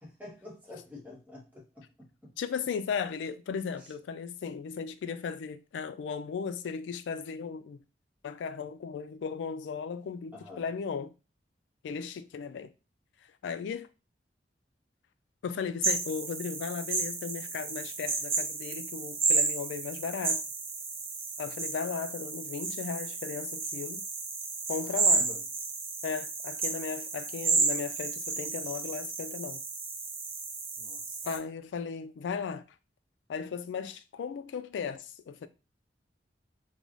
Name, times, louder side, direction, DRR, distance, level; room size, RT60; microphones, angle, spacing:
voice 1, 0.0-2.3 3.8-3.9 10.3-10.6 24.8-25.5 30.8-31.2, left 2 dB, 10° right, 0.9 m, -48 dB
voice 2, 2.4-7.8 8.2-11.1 11.8-12.7 13.4-13.9 15.4-20.4 21.4-24.0 24.7-25.3 26.0-29.6 31.2-32.6 33.3-35.5, left 6 dB, 85° left, 0.3 m, -36 dB
sound 1, 15.8-31.4, right 4 dB, 35° right, 0.5 m, -32 dB
3.1 x 2.3 x 2.5 m
head